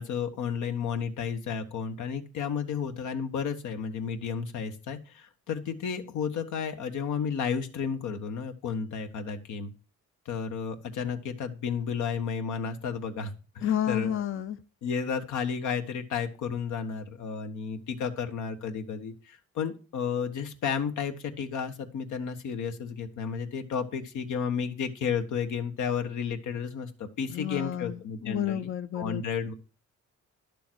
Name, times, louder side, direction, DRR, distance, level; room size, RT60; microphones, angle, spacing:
voice 1, 0.0-9.7 10.2-14.2 14.8-29.5, left 6 dB, 75° left, 7 dB, 1.5 m, -32 dB
voice 2, 13.6-14.6 27.3-29.2, left 11 dB, 45° left, 11 dB, 0.7 m, -31 dB
11.0 x 7.0 x 4.6 m, 0.36 s
cardioid pair, 90°, 30 cm